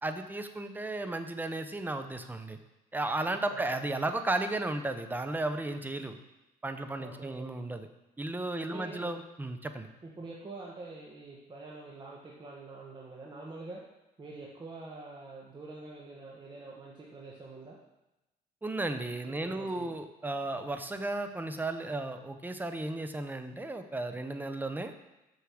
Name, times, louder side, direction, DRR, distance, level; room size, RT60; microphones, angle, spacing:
voice 1, 0.0-2.6 2.9-6.2 6.6-7.9 8.2-9.9 18.6-24.9, right 2 dB, 10° right, 8 dB, 0.8 m, -34 dB
voice 2, 3.2-3.8 7.0-7.5 8.6-9.1 10.0-13.8 14.2-17.8 19.3-19.9, right 3 dB, 25° right, -3 dB, 1.4 m, -46 dB
6.8 x 6.3 x 6.4 m, 0.97 s
cardioid pair, 110°, 17 cm